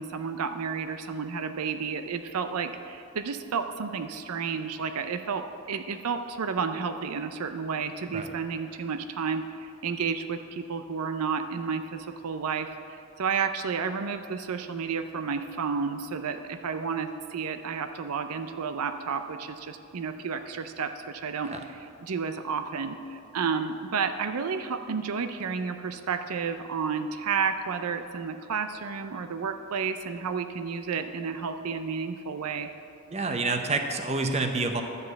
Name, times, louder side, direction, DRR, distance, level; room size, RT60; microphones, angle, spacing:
voice 1, 0.0-32.7, right 5 dB, 85° right, 8 dB, 0.5 m, -31 dB
voice 2, 33.1-34.8, right 3 dB, 30° right, 5 dB, 0.8 m, -28 dB
11.0 x 5.5 x 8.1 m, 2.6 s
head